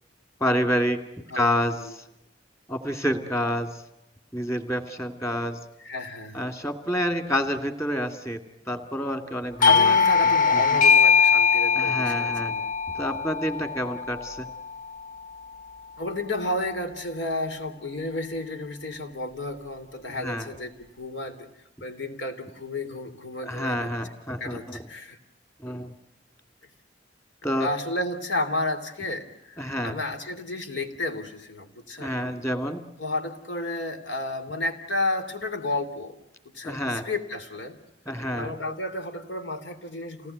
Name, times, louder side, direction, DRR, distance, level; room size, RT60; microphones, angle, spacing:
voice 1, 0.4-1.0 1.3-2.0 2.7-3.7 4.3-5.6 6.3-8.4 8.7-10.0 11.7-12.5 12.9-14.5 20.2-20.5 23.4-24.8 25.6-25.9 27.4-27.7 29.6-30.0 32.0-32.8 36.6-37.1 38.1-38.5, equal, 15° left, 7 dB, 2.4 m, -28 dB
voice 2, 5.8-6.4 9.6-12.7 16.0-21.5 21.8-23.9 24.4-25.2 27.6-32.1 33.0-36.2 36.5-37.8 38.3-40.3, left 2 dB, 85° left, 8 dB, 3.3 m, -32 dB
Doorbell, 9.6-14.9, left 6 dB, 45° left, 1.0 m, -21 dB
28.5 x 19.0 x 9.5 m, 0.89 s
head